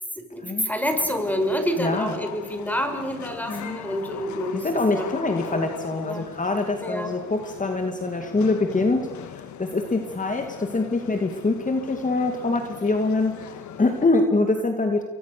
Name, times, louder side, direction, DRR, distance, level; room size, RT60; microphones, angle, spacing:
voice 1, 0.3-5.1 5.5-5.6 6.0-6.3 6.8-7.1, equal, 5° left, 6 dB, 5.8 m, -28 dB
sound 1, 0.8-14.0, left 9 dB, 70° left, 1.9 m, -40 dB
voice 2, 1.8-2.1 3.5-3.8 4.5-15.0, left 3 dB, 25° left, 5 dB, 2.5 m, -24 dB
29.0 x 23.0 x 6.9 m, 1.2 s
cardioid pair, 90°, 30 cm